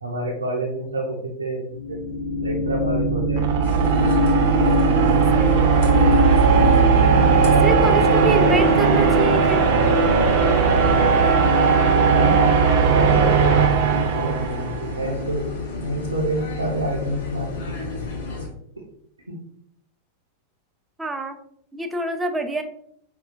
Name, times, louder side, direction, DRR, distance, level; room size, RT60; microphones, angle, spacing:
voice 1, 0.0-1.6 1.9-2.0 2.4-3.5 7.4-8.5 12.1-12.5 12.9-13.6 14.1-15.4 15.7-18.0, right 1 dB, 80° right, -5 dB, 0.7 m, -27 dB
sound 1, 1.8-14.9, right 4 dB, 50° right, 0.7 m, -17 dB
sound 2, 3.6-18.5, left 3 dB, 55° left, 0.8 m, -32 dB
voice 2, 4.9-5.9 7.4-9.7 21.0-21.4 21.7-22.6, right 2 dB, 10° right, 6 dB, 0.4 m, -27 dB
5.3 x 2.2 x 2.4 m, 0.68 s
figure-of-eight pair, 90°, 0 cm